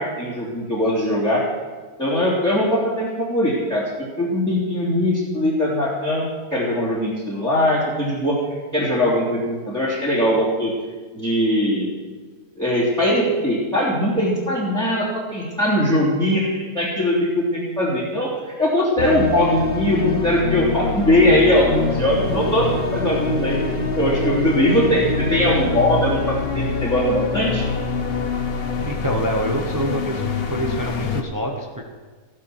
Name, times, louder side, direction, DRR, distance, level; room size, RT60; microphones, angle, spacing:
voice 1, 0.0-1.4 2.0-8.4 8.7-10.7 11.1-11.9 12.6-27.7, left 1 dB, ahead, -9 dB, 3.0 m, -21 dB
sound 1, 19.0-31.2, left 4 dB, 45° left, 1.1 m, -25 dB
voice 2, 28.9-31.9, right 1 dB, 15° right, 1 dB, 1.2 m, -26 dB
14.5 x 10.5 x 6.2 m, 1.4 s
omnidirectional pair, 1.6 m